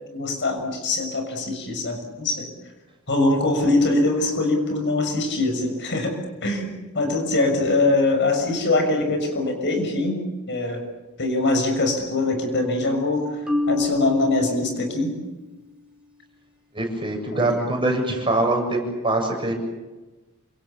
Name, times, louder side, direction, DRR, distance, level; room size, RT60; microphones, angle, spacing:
voice 1, 0.1-2.5 3.1-6.1 6.4-6.7 6.9-10.2 10.5-10.8 11.2-15.1 17.3-17.6, left 2 dB, 55° left, 5 dB, 6.5 m, -23 dB
Marimba xylophone, 13.5-15.5, left 2 dB, 5° right, 5.4 m, -28 dB
voice 2, 16.7-19.5, right 2 dB, 25° right, 2 dB, 7.4 m, -23 dB
28.0 x 27.0 x 7.1 m, 1.1 s
head